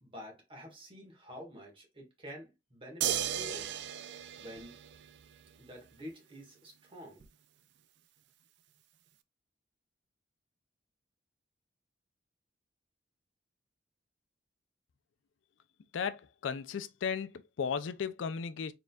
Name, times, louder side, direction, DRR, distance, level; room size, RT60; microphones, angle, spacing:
voice 1, 0.0-3.8 4.4-4.8 5.6-7.2, equal, 30° right, 1.6 m, -48 dB
sound 1, 3.0-5.5 7.2-7.3, right 9 dB, 65° right, 0.4 m, -35 dB
voice 2, 15.9-18.7, left 6 dB, 80° left, 0.4 m, -35 dB
4.2 x 3.7 x 2.3 m
head